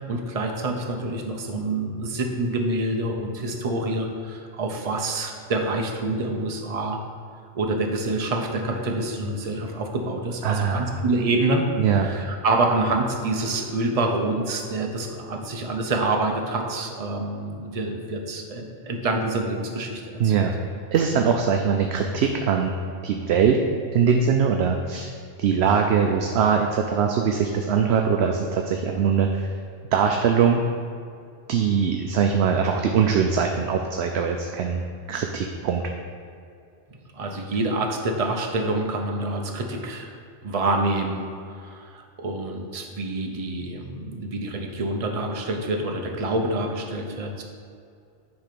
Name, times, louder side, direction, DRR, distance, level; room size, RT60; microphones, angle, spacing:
voice 1, 0.1-7.0 7.5-11.7 12.0-20.5 37.1-40.1 40.4-47.4, right 2 dB, 35° right, 2 dB, 0.7 m, -27 dB
voice 2, 10.4-11.0 11.8-12.1 20.2-20.5 20.9-22.7 23.0-23.6 23.9-25.1 25.4-29.5 29.9-30.6 31.5-35.8, right 6 dB, 65° right, 3 dB, 0.8 m, -22 dB
9.7 x 3.5 x 5.9 m, 2.4 s
omnidirectional pair, 1.3 m